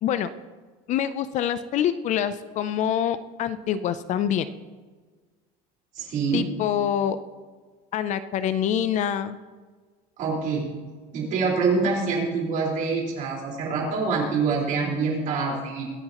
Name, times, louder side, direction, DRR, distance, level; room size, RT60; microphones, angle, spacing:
voice 1, 0.9-4.5 6.3-7.2 7.9-9.4, left 9 dB, 40° left, 13 dB, 0.5 m, -25 dB
voice 2, 6.0-6.4 10.2-10.7 11.1-15.9, right 4 dB, 45° right, -2 dB, 4.4 m, -25 dB
23.5 x 9.6 x 3.0 m, 1.4 s
cardioid pair, 160°, 18 cm